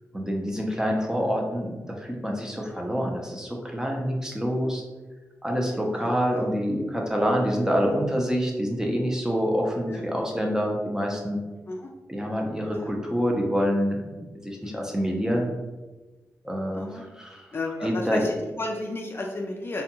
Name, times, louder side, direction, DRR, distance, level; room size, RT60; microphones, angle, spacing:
voice 1, 0.1-4.8 5.4-11.4 12.1-15.5 16.4-17.5 17.8-18.2, equal, 10° right, 0 dB, 0.6 m, -27 dB
voice 2, 5.9-6.5 7.8-7.9 9.9-10.0 11.7-11.9 12.7-13.0 14.6-14.8 16.7-17.0 17.5-19.8, left 2 dB, 35° left, 0 dB, 0.4 m, -33 dB
2.4 x 2.3 x 2.8 m, 1.2 s
cardioid pair, 50°, 6 cm